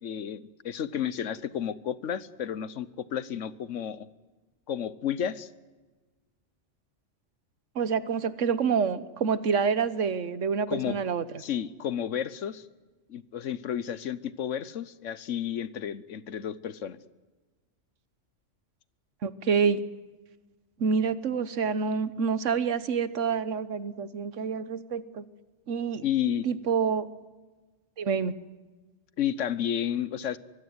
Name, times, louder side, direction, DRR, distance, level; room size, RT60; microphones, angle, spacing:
voice 1, 0.0-4.1 4.7-5.5 10.7-11.0 11.4-12.7 13.1-17.0 26.0-26.5 29.2-30.4, left 9 dB, 85° left, 17 dB, 1.3 m, -32 dB
voice 2, 7.7-11.2 19.2-19.8 20.8-25.2 25.7-26.0 26.4-27.1 28.0-28.3, right 6 dB, 85° right, 15 dB, 1.4 m, -27 dB
23.5 x 16.0 x 9.5 m, 1.3 s
omnidirectional pair, 1.2 m